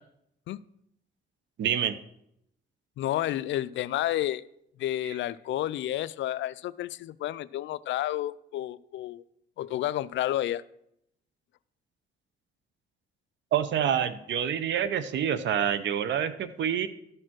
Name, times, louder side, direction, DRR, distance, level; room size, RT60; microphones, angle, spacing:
voice 1, 1.6-1.9 5.0-5.1 13.5-16.9, right 9 dB, 70° right, 13 dB, 0.7 m, -27 dB
voice 2, 3.0-4.4 4.8-9.2 9.6-10.6, left 13 dB, 70° left, 17 dB, 0.4 m, -30 dB
12.5 x 4.4 x 6.1 m, 0.77 s
cardioid pair, 90°, 20 cm